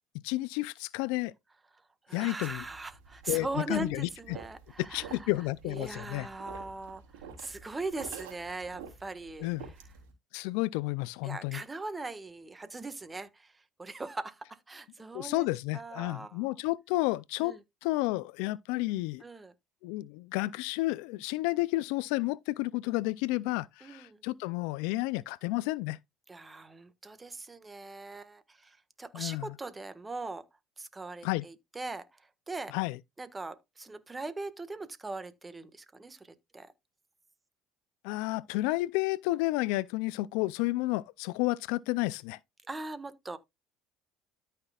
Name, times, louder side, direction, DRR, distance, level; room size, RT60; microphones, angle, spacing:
voice 1, 0.2-1.3 2.1-2.6 3.3-4.4 4.8-6.3 9.4-9.7 10.3-11.6 15.1-19.2 19.8-26.0 29.1-29.6 31.2-31.5 32.7-33.0 38.0-42.4, left 20 dB, 80° left, 0.4 m, -31 dB
voice 2, 2.1-5.3 5.7-9.7 11.2-15.5 15.7-16.5 17.4-17.6 19.2-19.5 23.8-24.2 26.3-30.4 30.8-32.8 33.2-36.7 42.7-43.4, right 3 dB, 20° right, 1.5 m, -40 dB
sound 1, 2.4-10.1, right 6 dB, 90° right, 3.3 m, -49 dB
13.0 x 5.8 x 2.4 m
supercardioid pair, 90°, 0 cm